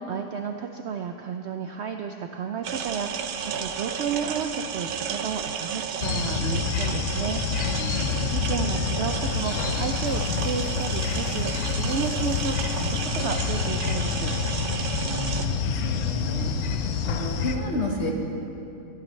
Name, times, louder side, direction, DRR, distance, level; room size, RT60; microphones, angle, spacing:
voice 1, 0.0-7.4 8.3-14.3, right 6 dB, 70° right, 5 dB, 0.6 m, -32 dB
sound 1, 2.6-15.5, right 7 dB, 85° right, 1.3 m, -32 dB
sound 2, 6.0-17.6, left 6 dB, 75° left, 1.1 m, -28 dB
voice 2, 7.7-8.3 14.9-16.6 17.0-18.1, left 1 dB, 50° left, 0 dB, 1.6 m, -31 dB
sound 3, 8.0-13.6, right 1 dB, 15° right, 2.4 m, -49 dB
22.5 x 9.4 x 3.2 m, 2.8 s
omnidirectional pair, 1.6 m